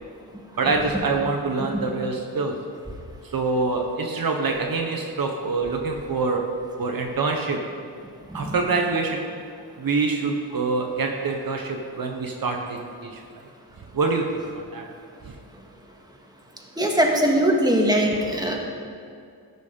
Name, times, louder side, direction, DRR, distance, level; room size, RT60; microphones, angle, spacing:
voice 1, 0.6-2.6 3.2-6.5 6.8-7.7 8.3-9.3 9.8-13.2 13.9-14.9, right 3 dB, 60° right, 3 dB, 1.1 m, -25 dB
voice 2, 16.8-18.6, equal, 10° right, 0 dB, 1.8 m, -20 dB
13.5 x 6.2 x 5.4 m, 2.4 s
cardioid pair, 75°, 39 cm